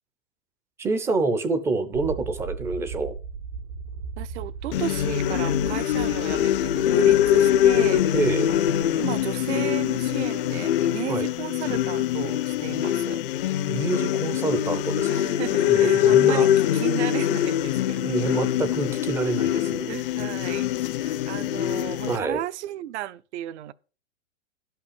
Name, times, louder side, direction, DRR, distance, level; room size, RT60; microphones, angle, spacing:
voice 1, 0.8-3.2 8.1-8.8 11.1-11.3 13.7-15.2 15.7-16.5 18.0-19.9 20.2-20.3 22.1-22.4, right 3 dB, 5° right, 0.5 m, -27 dB
sound 1, 1.9-10.0, right 5 dB, 90° right, 2.8 m, -38 dB
voice 2, 4.2-8.2 8.5-13.2 13.7-13.8 15.1-16.5 16.7-18.2 19.9-20.7 21.0-23.7, right 13 dB, 60° right, 0.7 m, -34 dB
sound 2, 4.7-22.2, left 11 dB, 45° left, 0.6 m, -23 dB
12.0 x 5.7 x 6.7 m
supercardioid pair, 160°, 39 cm